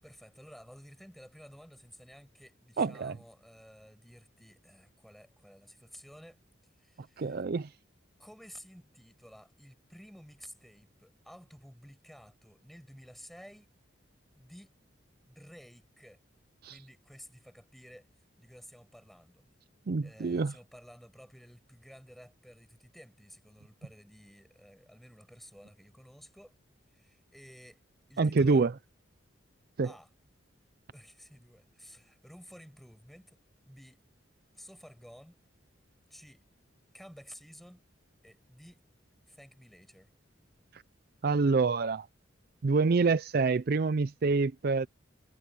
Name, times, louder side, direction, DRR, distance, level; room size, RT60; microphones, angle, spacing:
voice 1, 0.0-6.4 6.8-7.4 8.2-13.7 14.4-14.8 15.3-16.2 16.6-18.1 18.4-19.4 20.0-26.6 26.9-27.8 28.1-28.7 29.8-30.1 30.9-33.4 33.7-34.0 34.5-35.4 36.1-36.5 36.9-37.8 38.2-38.8 39.3-40.1, equal, ahead, 7.9 m, -53 dB
voice 2, 2.8-3.2 7.2-7.7 16.6-16.8 19.9-20.5 28.2-28.7 29.8-29.9 40.7-40.8 41.2-42.1 42.6-44.9, right 4 dB, 50° right, 0.4 m, -26 dB
head